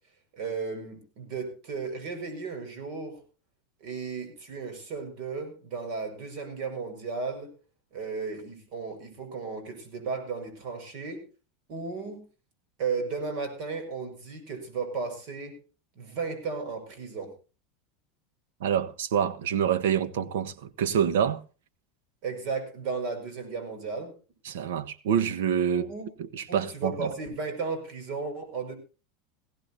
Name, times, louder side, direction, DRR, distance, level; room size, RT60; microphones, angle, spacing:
voice 1, 0.3-3.2 3.8-7.5 7.9-11.2 11.7-12.3 12.8-15.6 16.0-17.3 22.2-24.1 25.7-26.1 26.5-28.8, right 4 dB, 55° right, 5.4 m, -34 dB
voice 2, 18.6-21.4 24.4-25.8 26.3-27.1, right 8 dB, 85° right, 1.2 m, -26 dB
19.0 x 16.0 x 2.7 m
supercardioid pair, 145°, 0 cm